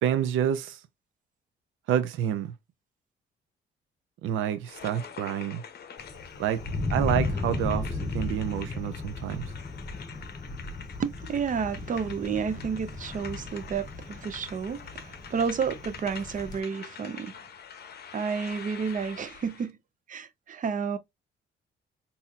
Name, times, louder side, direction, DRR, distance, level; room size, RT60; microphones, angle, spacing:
voice 1, 0.0-0.8 1.9-2.5 4.2-5.6 6.4-6.6 6.9-9.5, right 10 dB, 85° right, 0.6 m, -28 dB
sound 1, 4.6-19.7, left 7 dB, 55° left, 0.7 m, -46 dB
Thunder, 6.0-16.6, left 3 dB, 20° left, 0.8 m, -35 dB
voice 2, 11.0-17.4 18.1-19.8 20.1-21.0, right 6 dB, 40° right, 0.6 m, -31 dB
4.1 x 2.8 x 2.3 m
cardioid pair, 90°, 20 cm